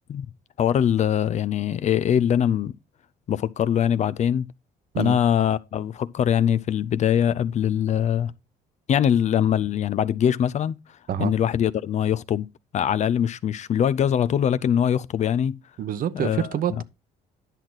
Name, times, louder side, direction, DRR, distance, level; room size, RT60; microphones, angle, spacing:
voice 1, 0.6-2.7 3.3-4.5 5.0-8.3 8.9-10.8 11.2-12.5 12.7-15.6 16.1-16.5 16.8-16.9, left 9 dB, 45° left, 0.5 m, -22 dB
voice 2, 15.8-16.8, right 9 dB, 55° right, 0.9 m, -26 dB
10.5 x 6.2 x 4.0 m
cardioid pair, 110°, 17 cm